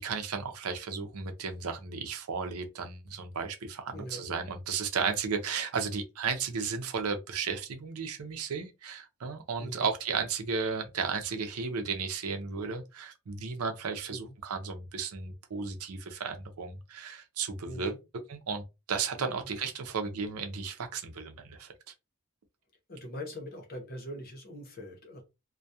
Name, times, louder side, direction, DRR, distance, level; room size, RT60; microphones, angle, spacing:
voice 1, 0.0-17.9 18.3-21.7, right 5 dB, 90° right, 0.6 m, -34 dB
voice 2, 3.9-4.2 9.6-9.9 14.1-14.3 17.6-18.0 19.2-19.5 22.9-25.2, equal, 45° left, 0.8 m, -42 dB
2.2 x 2.2 x 2.7 m
head